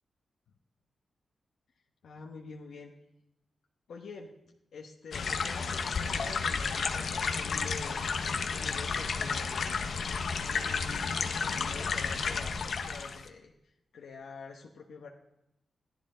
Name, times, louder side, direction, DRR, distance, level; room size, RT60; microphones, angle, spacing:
voice 1, 2.0-2.9 3.9-4.3 4.7-9.9 10.4-15.1, left 4 dB, 80° left, 0 dB, 1.0 m, -47 dB
sound 1, 5.1-13.3, left 5 dB, 55° left, 0.8 m, -32 dB
15.5 x 11.0 x 3.8 m, 0.86 s
wide cardioid pair, 175°, 0 cm